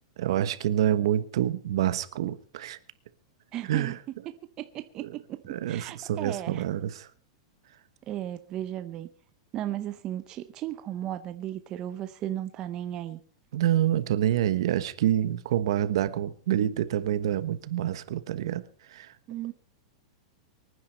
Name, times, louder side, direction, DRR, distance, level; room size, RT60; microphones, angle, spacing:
voice 1, 0.2-2.8 3.6-4.0 5.0-5.2 5.5-7.1 13.5-19.2, right 11 dB, 60° right, 1.2 m, -27 dB
voice 2, 3.5-3.9 4.6-6.6 8.1-9.1 9.5-13.2 19.3-19.5, right 12 dB, 25° right, 0.6 m, -35 dB
24.0 x 9.7 x 4.3 m
supercardioid pair, 170°, 3 cm